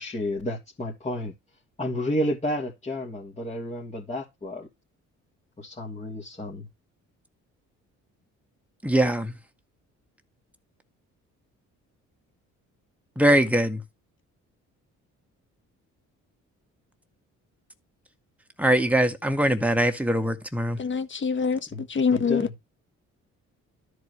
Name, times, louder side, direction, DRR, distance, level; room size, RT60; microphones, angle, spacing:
voice 1, 0.0-1.3 1.8-4.7 5.6-6.7 21.7-21.8 22.1-22.5, left 1 dB, 25° left, 2.8 m, -31 dB
voice 2, 8.8-9.3 13.2-13.8 18.6-20.8, right 1 dB, 5° right, 1.8 m, -22 dB
voice 3, 20.8-22.4, left 5 dB, 40° left, 1.5 m, -25 dB
13.0 x 4.7 x 3.1 m
cardioid pair, 90°, 30 cm